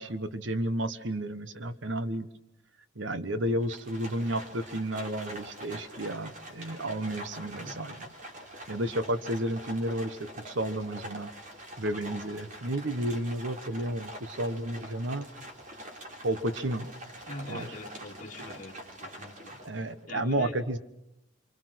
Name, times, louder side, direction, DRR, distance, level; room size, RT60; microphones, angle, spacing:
voice 1, 0.0-2.3 2.9-8.0 8.7-11.3 11.8-15.3 16.2-16.9 17.5-17.7 19.6-20.8, right 1 dB, 65° right, 12 dB, 1.2 m, -32 dB
Livestock farm animals working animals, 3.6-20.0, right 1 dB, 40° right, 3.5 m, -45 dB
voice 2, 7.5-7.8 17.3-19.6 20.1-20.6, left 2 dB, 40° left, 0 dB, 2.6 m, -43 dB
27.5 x 24.5 x 6.3 m, 0.86 s
head